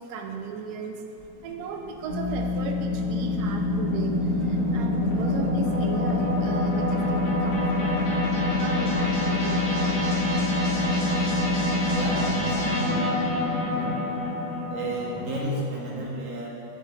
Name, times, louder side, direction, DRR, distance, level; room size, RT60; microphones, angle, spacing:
voice 1, 0.0-10.5, right 4 dB, 75° right, 4 dB, 0.9 m, -36 dB
sound 1, 1.2-15.4, equal, 70° left, 2.2 m, -27 dB
sound 2, 2.1-12.4, left 4 dB, 90° left, 0.7 m, -29 dB
voice 2, 11.9-13.2 13.7-14.0 14.7-16.5, right 1 dB, 50° right, -4 dB, 1.2 m, -33 dB
7.3 x 3.2 x 4.8 m, 2.7 s
omnidirectional pair, 2.2 m